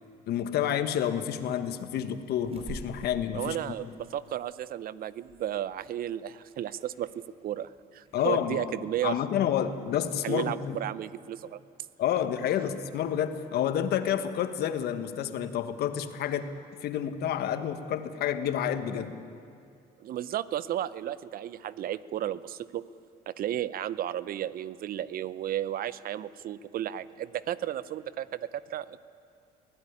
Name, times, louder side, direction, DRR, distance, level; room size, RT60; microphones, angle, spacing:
voice 1, 0.3-3.6 8.1-8.7 9.0-10.8 12.0-16.5 16.8-19.2, left 9 dB, 70° left, 10 dB, 1.4 m, -29 dB
sound 1, 2.1-10.0, right 2 dB, 35° right, 5.2 m, -51 dB
voice 2, 3.4-9.2 10.2-11.6 20.0-22.8 23.3-29.1, right 11 dB, 60° right, 17 dB, 0.7 m, -33 dB
22.5 x 16.5 x 9.9 m, 2.4 s
cardioid pair, 110°, 17 cm